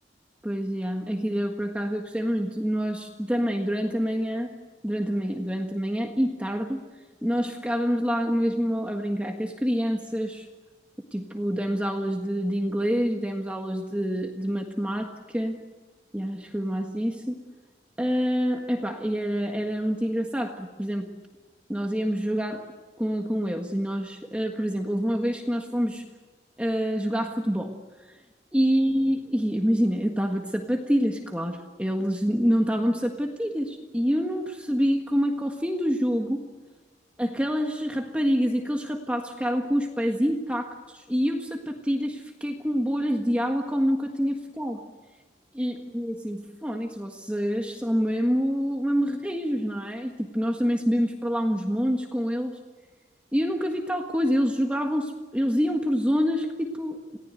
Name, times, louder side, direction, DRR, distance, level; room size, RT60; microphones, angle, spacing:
voice 1, 0.4-4.5 4.8-6.8 7.2-10.5 11.1-15.6 16.1-17.4 18.0-21.1 21.7-22.6 23.0-26.0 26.6-27.7 28.5-36.4 37.2-44.8 45.5-52.6 53.3-57.2, equal, 5° right, 2 dB, 1.6 m, -26 dB
28.0 x 18.5 x 7.9 m, 1.3 s
head